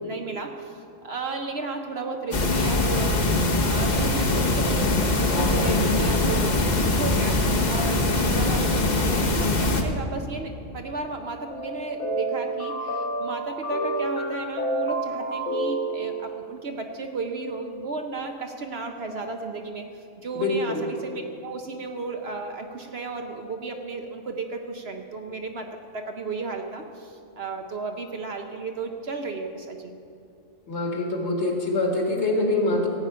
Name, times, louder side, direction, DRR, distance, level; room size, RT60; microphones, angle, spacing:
voice 1, 0.0-3.2 3.6-6.5 6.8-30.0, right 3 dB, 55° right, 4 dB, 0.9 m, -34 dB
sound 1, 2.3-9.8, left 2 dB, 35° left, 0.9 m, -22 dB
sound 2, 11.5-16.5, right 2 dB, 85° left, 1.9 m, -29 dB
voice 2, 20.3-20.8 30.7-32.9, left 2 dB, 55° left, 1 dB, 1.9 m, -24 dB
15.0 x 8.9 x 5.6 m, 2.6 s
omnidirectional pair, 1.4 m